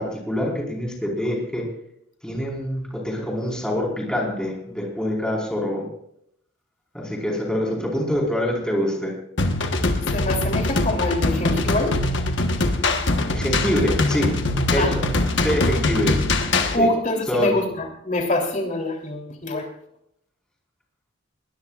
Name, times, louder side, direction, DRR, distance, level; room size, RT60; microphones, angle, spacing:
voice 1, 0.0-1.7 2.2-5.9 6.9-9.1 13.3-14.3 14.7-15.0 15.4-16.2 16.8-16.9 17.3-17.6, equal, 5° left, -2 dB, 4.7 m, -25 dB
sound 1, 9.4-16.8, left 2 dB, 70° left, 1.4 m, -22 dB
voice 2, 10.1-12.0 14.8-14.9 16.7-19.7, left 1 dB, 40° left, 1 dB, 3.4 m, -24 dB
21.0 x 20.0 x 2.5 m, 0.73 s
head